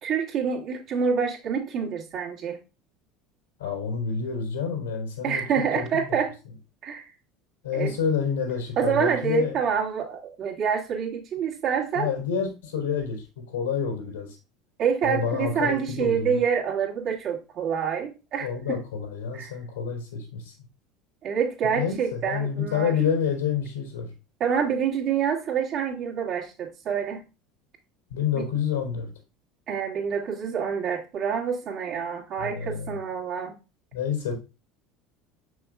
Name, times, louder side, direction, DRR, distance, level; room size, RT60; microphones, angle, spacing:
voice 1, 0.0-2.6 5.2-6.3 6.8-7.0 7.7-7.9 8.8-12.1 14.8-18.8 19.3-19.5 21.2-22.9 24.4-27.2 28.3-28.5 29.7-33.6, right 7 dB, 50° right, -1 dB, 2.4 m, -27 dB
voice 2, 3.6-5.4 5.7-6.1 7.6-9.6 11.9-14.4 15.0-16.4 18.4-20.5 21.6-24.1 28.1-29.1 32.4-32.9 33.9-34.3, left 7 dB, 80° left, 0 dB, 3.2 m, -28 dB
7.0 x 6.1 x 2.5 m, 0.29 s
hypercardioid pair, 70°, 0 cm